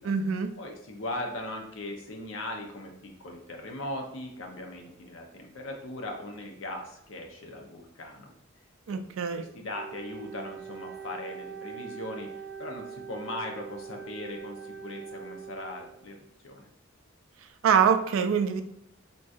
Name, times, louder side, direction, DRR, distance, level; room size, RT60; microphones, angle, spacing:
voice 1, 0.0-0.5 8.9-9.4 17.6-18.6, right 7 dB, 70° right, 9 dB, 0.3 m, -24 dB
voice 2, 0.6-8.3 8.9-9.0 9.3-16.2 16.4-16.7, left 1 dB, 65° left, 2 dB, 0.6 m, -39 dB
Wind instrument woodwind instrument, 9.7-16.1, right 6 dB, 90° right, 0.7 m, -43 dB
3.7 x 2.6 x 2.3 m, 0.75 s
head